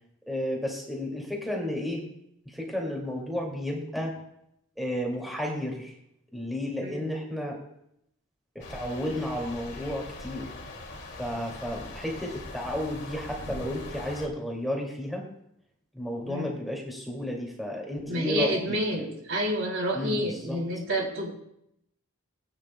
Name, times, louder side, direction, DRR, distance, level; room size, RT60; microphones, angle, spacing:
voice 1, 0.3-2.0 2.5-4.2 4.8-6.0 6.3-7.6 8.5-10.5 11.2-15.2 15.9-19.1 19.9-20.6, left 1 dB, ahead, -2 dB, 2.3 m, -32 dB
sound 1, 8.6-14.3, left 2 dB, 55° left, 2.3 m, -41 dB
voice 2, 18.1-21.3, equal, 60° right, 0 dB, 2.9 m, -29 dB
20.0 x 9.7 x 2.2 m, 0.75 s
head